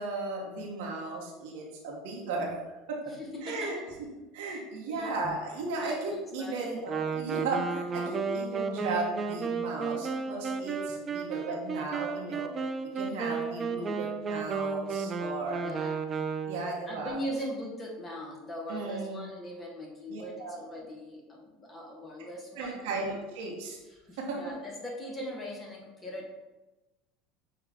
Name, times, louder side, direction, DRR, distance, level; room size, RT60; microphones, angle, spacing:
voice 1, 0.0-2.6 2.9-3.0 3.4-3.7 4.3-12.5 12.9-15.6 16.5-17.2 18.7-19.3 20.1-20.6 22.6-23.8 24.2-24.4, right 3 dB, 75° right, -2 dB, 1.0 m, -35 dB
voice 2, 3.1-3.9 4.5-4.6 4.9-5.4 5.8-6.7 10.9-11.0 15.6-16.0 16.8-22.8 23.9-26.3, equal, 25° left, -1 dB, 0.9 m, -40 dB
Wind instrument woodwind instrument, 6.9-16.8, right 5 dB, 30° right, 0.4 m, -33 dB
6.5 x 2.3 x 3.4 m, 1.1 s
supercardioid pair, 100°, 0 cm